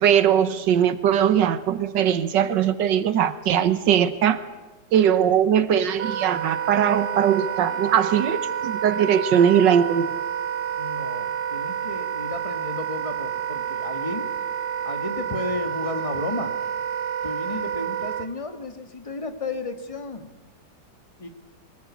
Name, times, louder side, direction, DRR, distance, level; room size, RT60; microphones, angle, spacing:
voice 1, 0.0-4.4 4.9-10.1, right 9 dB, 80° right, 13 dB, 1.6 m, -20 dB
Wind instrument woodwind instrument, 6.0-18.3, right 8 dB, 65° right, 1.5 m, -29 dB
voice 2, 10.7-14.3 14.9-16.5 17.2-20.3 21.2-21.3, left 3 dB, 20° left, 7 dB, 1.8 m, -33 dB
23.0 x 20.5 x 8.4 m, 1.2 s
omnidirectional pair, 1.9 m